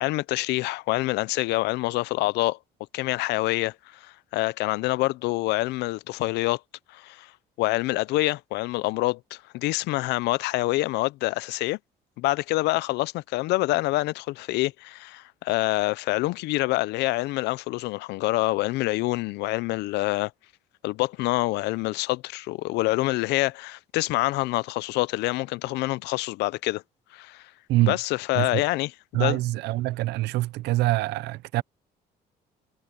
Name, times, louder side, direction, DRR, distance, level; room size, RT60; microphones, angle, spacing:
voice 1, 0.0-2.6 2.9-6.6 6.9-7.3 7.6-11.8 12.2-20.3 20.8-26.8 27.1-27.4 27.9-29.4, left 20 dB, 85° left, 0.5 m, -26 dB
voice 2, 29.1-31.6, right 17 dB, 85° right, 0.7 m, -25 dB
cardioid pair, 110°, 17 cm